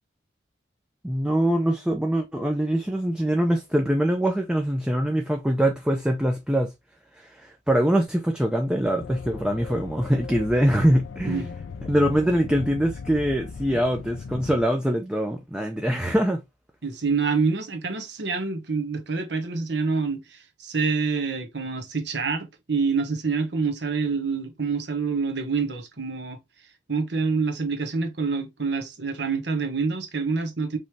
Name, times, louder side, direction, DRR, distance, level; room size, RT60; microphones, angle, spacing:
voice 1, 1.0-6.7 7.2-11.5 11.9-16.4, equal, 5° right, 0.5 m, -23 dB
sound 1, 9.0-14.7, left 5 dB, 90° left, 0.4 m, -38 dB
voice 2, 16.8-26.4 26.9-30.8, right 4 dB, 70° right, 1.2 m, -27 dB
5.3 x 3.2 x 2.7 m
head